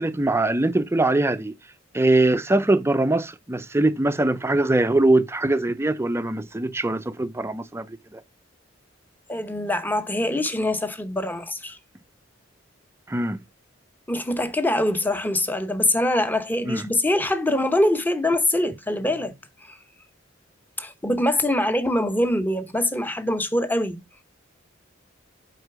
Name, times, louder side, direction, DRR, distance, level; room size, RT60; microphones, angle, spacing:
voice 1, 0.0-1.5 1.9-7.9 8.1-8.2 13.1-13.4 16.7-16.8, right 2 dB, 15° right, 0.5 m, -22 dB
voice 2, 9.3-11.8 14.1-19.3 20.8-24.0, left 1 dB, 10° left, 0.8 m, -23 dB
8.0 x 4.6 x 4.7 m
head